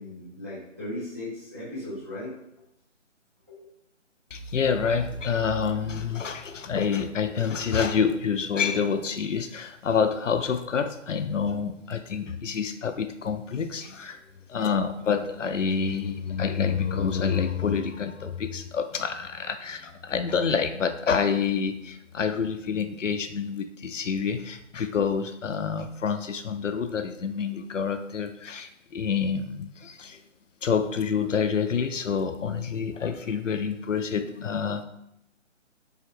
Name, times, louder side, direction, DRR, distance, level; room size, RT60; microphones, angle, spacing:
voice 1, 0.0-2.7 3.5-3.7 24.1-24.2, left 1 dB, 10° right, -10 dB, 0.5 m, -37 dB
voice 2, 4.3-14.2 14.5-30.2 30.6-34.8, left 6 dB, 75° left, 9 dB, 0.6 m, -27 dB
4.8 x 2.9 x 3.0 m, 0.79 s
figure-of-eight pair, 145°, 37 cm